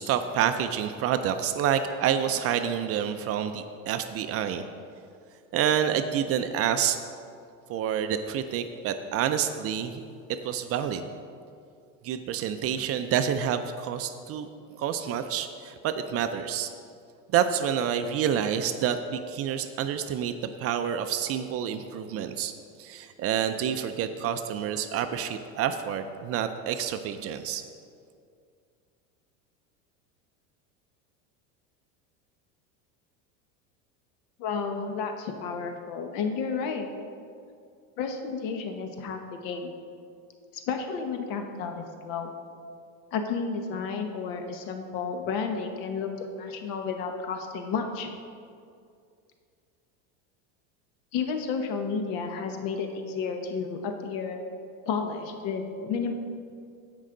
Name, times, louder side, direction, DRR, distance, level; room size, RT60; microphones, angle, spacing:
voice 1, 0.0-4.6 5.5-7.0 7.7-10.0 10.4-11.1 12.0-16.7 17.3-20.3 20.6-22.5 22.8-27.6, right 9 dB, 40° right, 9 dB, 0.5 m, -28 dB
voice 2, 34.4-36.9 38.0-39.8 40.5-42.3 43.1-48.1 51.1-54.4 54.8-56.1, left 5 dB, 60° left, 5 dB, 1.2 m, -32 dB
16.0 x 5.4 x 3.8 m, 2.4 s
supercardioid pair, 130°, 39 cm